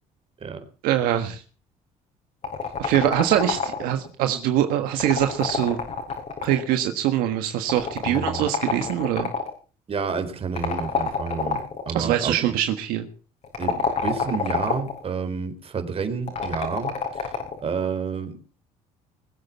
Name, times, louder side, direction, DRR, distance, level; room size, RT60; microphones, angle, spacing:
voice 1, 0.8-1.4 2.8-5.8 6.4-9.3 11.9-13.1, right 11 dB, 80° right, 6 dB, 1.5 m, -23 dB
sound 1, 2.4-4.1 4.9-6.7 7.7-9.5 10.6-11.9 13.4-15.0 16.3-17.6, left 5 dB, 50° left, 6.3 m, -27 dB
voice 2, 8.0-8.5 9.9-12.6 13.6-17.3 17.6-18.4, right 5 dB, 40° right, 9 dB, 3.9 m, -30 dB
21.0 x 8.1 x 7.2 m, 0.39 s
supercardioid pair, 85°, 15 cm